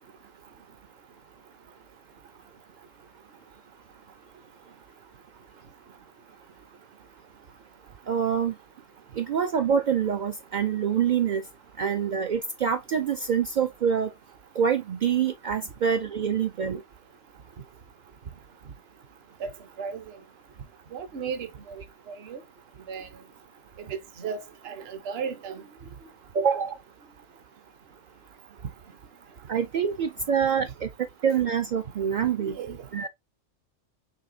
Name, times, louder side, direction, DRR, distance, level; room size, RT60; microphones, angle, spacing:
voice 1, 8.1-8.5 9.1-11.4 11.8-14.1 14.6-16.8 26.3-26.8 29.5-32.6 32.9-33.1, right 7 dB, 70° right, 0.4 m, -26 dB
voice 2, 19.8-20.2 20.9-22.4 22.9-23.1 23.9-25.6 32.5-32.8, right 6 dB, 55° right, 1.0 m, -35 dB
5.8 x 3.3 x 2.7 m
omnidirectional pair, 1.3 m